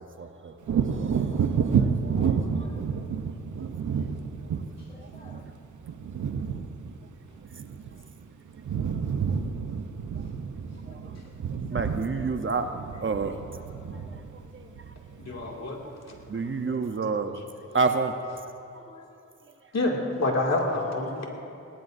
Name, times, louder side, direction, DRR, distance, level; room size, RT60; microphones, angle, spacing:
voice 1, 0.0-1.5 1.8-2.1 10.9-11.0 11.7-13.4 14.5-14.6 16.3-17.4 17.7-18.1, right 4 dB, 45° right, 7 dB, 0.8 m, -29 dB
Wind / Thunder, 0.6-8.2 8.5-15.7 16.1-16.3, right 6 dB, 85° right, 0.8 m, -30 dB
voice 2, 2.1-2.8 4.9-5.5 10.9-11.2 13.9-14.1 14.6-14.7 18.8-19.1, left 2 dB, 20° left, 3 dB, 0.8 m, -51 dB
voice 3, 15.2-15.8 19.7-21.3, left 2 dB, 60° left, -1 dB, 2.4 m, -27 dB
20.5 x 18.5 x 2.6 m, 2.7 s
wide cardioid pair, 85°, 29 cm